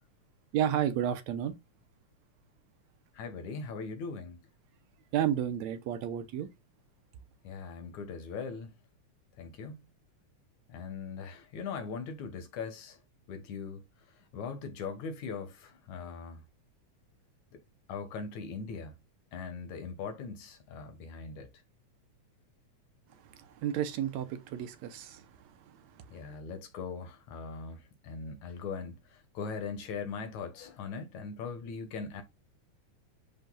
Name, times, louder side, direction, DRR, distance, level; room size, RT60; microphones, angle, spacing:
voice 1, 0.5-1.6 5.1-6.5 23.3-25.3 26.1-26.2, right 10 dB, 75° right, 2.0 m, -31 dB
voice 2, 3.1-4.4 7.4-8.7 9.4-9.9 10.7-13.0 13.3-13.8 14.3-16.4 17.5-17.6 17.9-19.0 19.3-21.5 26.1-32.2, left 5 dB, 75° left, 2.8 m, -40 dB
10.5 x 5.3 x 2.3 m
omnidirectional pair, 3.3 m